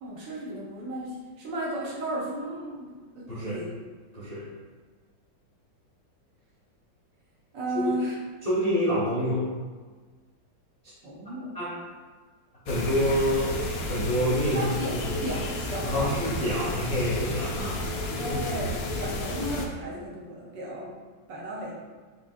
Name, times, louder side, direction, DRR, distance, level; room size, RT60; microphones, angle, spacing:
voice 1, 0.0-3.7 7.5-8.1 11.0-11.5 14.5-16.1 18.2-21.0 21.3-21.8, right 1 dB, 65° right, -4 dB, 1.4 m, -34 dB
voice 2, 3.3-3.6 4.1-4.5 7.7-7.9 8.4-9.5 11.5-11.7 12.6-14.7 15.0-15.2 15.8-17.8 18.1-18.4, equal, 35° left, -9 dB, 0.6 m, -27 dB
sound 1, 12.7-19.7, left 1 dB, 85° left, 0.7 m, -32 dB
4.9 x 3.3 x 2.6 m, 1.4 s
omnidirectional pair, 2.2 m